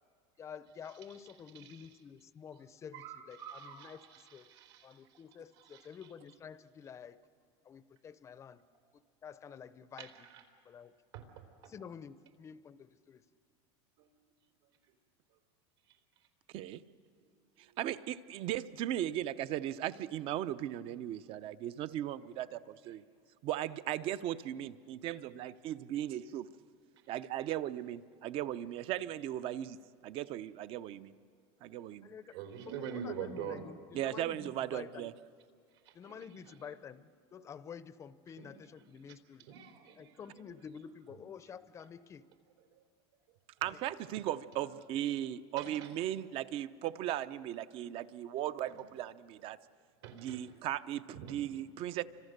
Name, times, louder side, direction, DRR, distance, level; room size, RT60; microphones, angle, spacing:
voice 1, 0.4-4.0 4.3-4.5 4.8-7.2 7.6-8.6 9.2-10.3 10.7-10.9 11.7-13.2 32.0-32.3 32.7-35.1 35.9-39.5 40.0-42.2 43.7-43.8, left 7 dB, 20° left, 15 dB, 0.6 m, -49 dB
voice 2, 1.5-1.9 2.9-5.2 5.6-5.8 10.0-10.4 11.1-11.3 32.3-33.7 35.9-36.6 38.4-38.5 39.0-39.1 39.5-40.4 45.6-45.9 48.7-48.8 50.0-50.5 51.2-51.4, right 7 dB, 75° right, 4 dB, 3.8 m, -45 dB
voice 3, 17.8-23.0 23.4-26.5 27.1-29.8 30.0-31.1 31.6-32.1 33.9-35.1 43.6-49.6 50.1-52.0, right 12 dB, 40° right, 15 dB, 0.7 m, -37 dB
29.5 x 25.5 x 6.7 m, 2.1 s
supercardioid pair, 150°, 14 cm